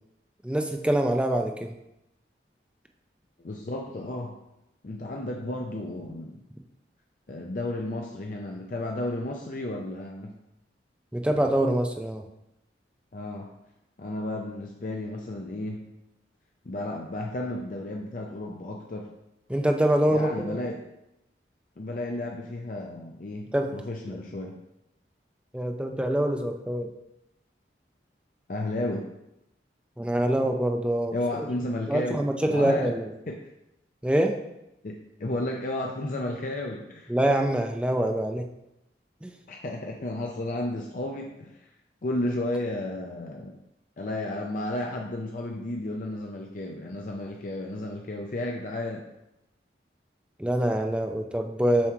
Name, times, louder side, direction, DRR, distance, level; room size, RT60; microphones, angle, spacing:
voice 1, 0.4-1.7 11.1-12.2 19.5-20.5 23.5-23.7 25.5-26.9 30.0-31.1 31.9-33.1 34.0-34.4 37.1-38.4 39.2-39.3 50.4-51.9, right 1 dB, 5° right, 4 dB, 0.4 m, -25 dB
voice 2, 3.4-4.4 4.8-6.4 7.3-10.3 13.1-13.5 14.0-15.9 16.6-19.1 20.1-20.8 21.8-24.6 28.5-29.1 31.1-32.9 33.3-33.4 34.8-37.1 39.5-41.7 42.0-43.5 44.0-49.1, left 1 dB, 45° left, 1 dB, 0.5 m, -33 dB
7.2 x 3.0 x 4.5 m, 0.89 s
head